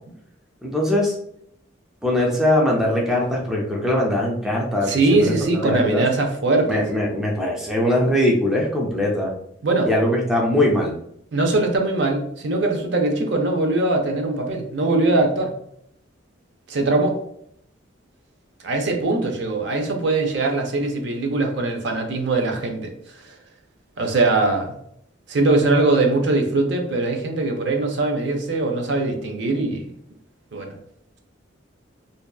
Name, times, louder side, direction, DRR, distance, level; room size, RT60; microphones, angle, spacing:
voice 1, 0.6-1.1 2.0-5.3 5.6-6.0 6.7-9.3 9.9-10.9, left 1 dB, 5° right, -2 dB, 0.3 m, -21 dB
voice 2, 4.8-6.8 9.6-9.9 11.3-15.5 16.7-17.2 18.6-22.9 23.2-23.3 24.0-24.7 25.3-29.9 30.5-30.7, right 2 dB, 60° right, 3 dB, 0.5 m, -21 dB
2.6 x 2.2 x 2.3 m, 0.70 s
head